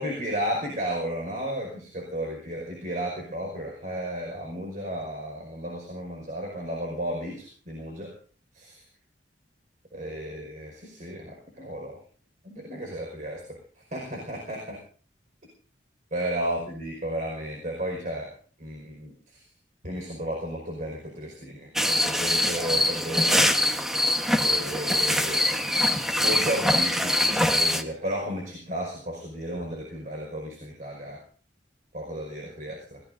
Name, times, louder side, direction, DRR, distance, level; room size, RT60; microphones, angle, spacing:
voice 1, 0.0-8.1 8.5-8.8 9.9-12.0 12.4-14.8 16.1-18.3 18.6-19.4 19.8-23.5 24.4-25.4 26.2-31.2 31.9-33.0, right 1 dB, 45° right, 0 dB, 5.2 m, -33 dB
sound 1, 21.8-27.8, left 1 dB, ahead, 1.2 m, -23 dB
29.5 x 17.5 x 2.7 m, 0.43 s
head